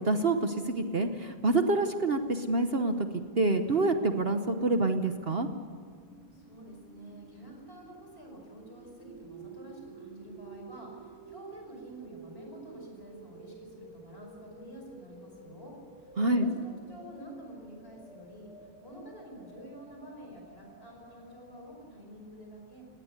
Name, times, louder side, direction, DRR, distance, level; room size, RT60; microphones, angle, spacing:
voice 1, 0.0-5.5 16.2-16.5, right 2 dB, 45° right, 7 dB, 0.7 m, -27 dB
sound 1, 3.8-21.7, right 4 dB, 80° right, 3.4 m, -52 dB
voice 2, 6.3-22.8, right 1 dB, 25° left, 1 dB, 5.8 m, -48 dB
19.5 x 18.0 x 8.2 m, 2.1 s
omnidirectional pair, 2.3 m